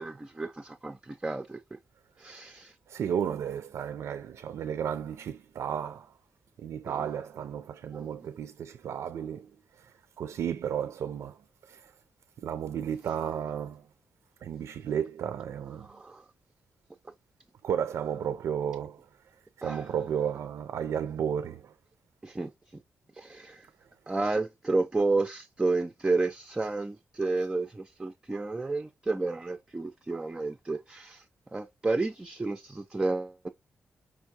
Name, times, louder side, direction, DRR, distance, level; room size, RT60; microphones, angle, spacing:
voice 1, 0.0-1.6 2.2-2.7 7.9-8.1 15.9-16.2 19.6-19.9 22.2-22.5 23.2-23.6 24.1-31.2 31.5-33.5, right 3 dB, 15° right, 0.4 m, -31 dB
voice 2, 2.9-6.1 6.6-9.5 9.8-11.4 11.6-11.9 12.4-13.9 14.4-15.9 17.6-19.0 19.6-21.7, right 8 dB, 85° right, 0.4 m, -33 dB
5.1 x 3.5 x 2.7 m
wide cardioid pair, 145°, 5 cm